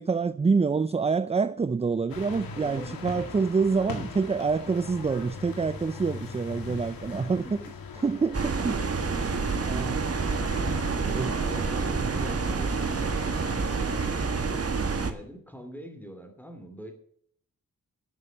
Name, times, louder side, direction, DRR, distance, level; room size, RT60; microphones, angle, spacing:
voice 1, 0.0-7.4 8.0-8.8 9.7-10.0 11.1-11.3 12.0-12.1, right 5 dB, 20° right, 0.4 m, -26 dB
sound 1, 2.1-14.4, left 4 dB, 90° left, 1.8 m, -41 dB
voice 2, 2.6-3.0 6.7-7.3 7.6-7.7 10.6-14.2 14.5-16.9, equal, 5° left, 2.8 m, -44 dB
sound 2, 8.3-15.1, right 4 dB, 45° right, 1.5 m, -28 dB
12.0 x 6.5 x 8.7 m
cardioid pair, 60°, 34 cm